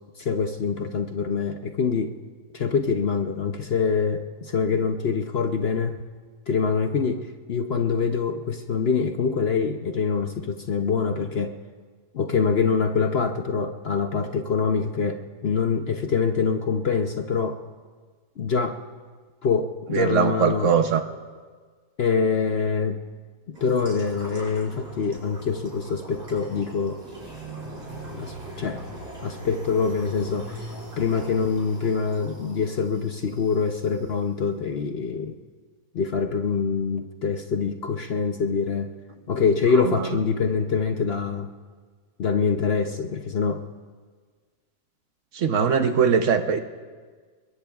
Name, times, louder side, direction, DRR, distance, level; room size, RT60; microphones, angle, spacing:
voice 1, 0.2-2.2 2.5-6.1 6.5-11.6 12.1-17.6 18.4-18.8 19.4-20.7 22.0-23.0 23.5-27.0 28.1-28.8 29.2-35.4 35.9-38.9 39.3-41.5 42.2-43.6, left 5 dB, 55° left, 6 dB, 0.8 m, -25 dB
voice 2, 19.9-21.0 39.9-40.0 45.3-46.6, right 6 dB, 60° right, 8 dB, 1.0 m, -21 dB
sound 1, 23.5-34.0, right 1 dB, 80° right, 5.9 m, -41 dB
29.0 x 21.5 x 2.3 m, 1.5 s
omnidirectional pair, 1.5 m